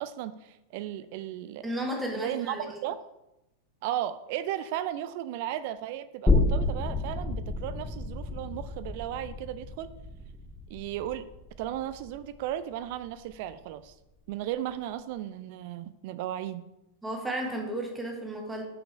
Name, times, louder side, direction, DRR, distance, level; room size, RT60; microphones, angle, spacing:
voice 1, 0.0-1.6 2.1-3.0 3.8-9.9 10.7-11.3 11.6-13.9 14.3-16.6, right 12 dB, 50° right, 14 dB, 0.3 m, -35 dB
voice 2, 1.6-2.8 17.0-18.6, right 1 dB, 10° right, 1 dB, 1.4 m, -33 dB
sound 1, 6.3-13.5 13.9-14.0, left 2 dB, 10° left, 0.7 m, -30 dB
6.0 x 5.0 x 4.6 m, 0.91 s
figure-of-eight pair, 90°, 0 cm